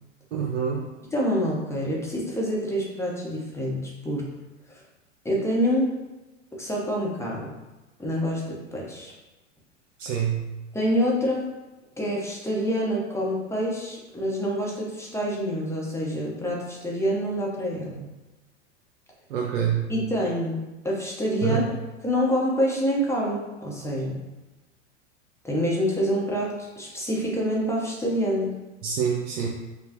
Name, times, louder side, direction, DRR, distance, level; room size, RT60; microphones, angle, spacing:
voice 1, 0.3-0.9 10.0-10.5 19.3-19.9 21.4-21.6 28.8-29.5, right 8 dB, 85° right, -1 dB, 0.6 m, -26 dB
voice 2, 1.1-4.2 4.7-4.8 5.2-5.9 6.5-7.5 8.0-9.1 10.7-11.5 12.0-18.1 19.9-21.7 22.0-24.2 25.4-28.5, equal, 5° left, -4 dB, 0.9 m, -26 dB
5.3 x 2.3 x 2.9 m, 1.1 s
hypercardioid pair, 100°, 36 cm